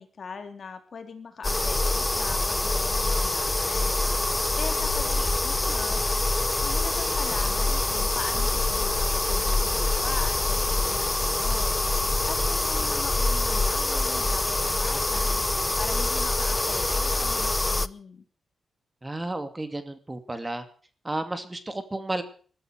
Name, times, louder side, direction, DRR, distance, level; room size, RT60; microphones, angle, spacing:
voice 1, 0.0-4.0 4.6-6.2 6.6-11.8 12.3-15.4 15.8-18.2, left 5 dB, 50° left, 6 dB, 3.6 m, -40 dB
sound 1, 1.4-17.9, left 2 dB, 15° left, 0.8 m, -25 dB
sound 2, 4.8-14.1, left 6 dB, 75° left, 4.3 m, -35 dB
voice 2, 19.0-20.6 21.0-22.2, right 2 dB, 15° right, 9 dB, 2.6 m, -32 dB
21.0 x 14.0 x 4.7 m, 0.43 s
cardioid pair, 105°, 0 cm